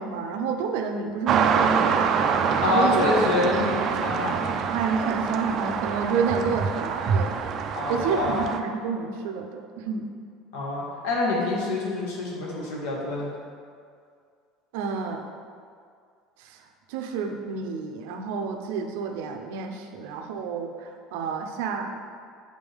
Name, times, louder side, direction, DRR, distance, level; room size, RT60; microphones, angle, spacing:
voice 1, 0.0-2.1 2.6-3.0 4.7-7.4 7.9-10.1 14.7-15.3 16.4-22.0, right 5 dB, 80° right, 4 dB, 0.7 m, -29 dB
sound 1, 1.3-8.6, right 6 dB, 40° right, 0.4 m, -25 dB
voice 2, 2.6-4.6 7.8-8.4 10.5-13.3, left 2 dB, 85° left, -3 dB, 1.8 m, -26 dB
7.6 x 5.2 x 3.6 m, 2.2 s
cardioid pair, 165°, 0 cm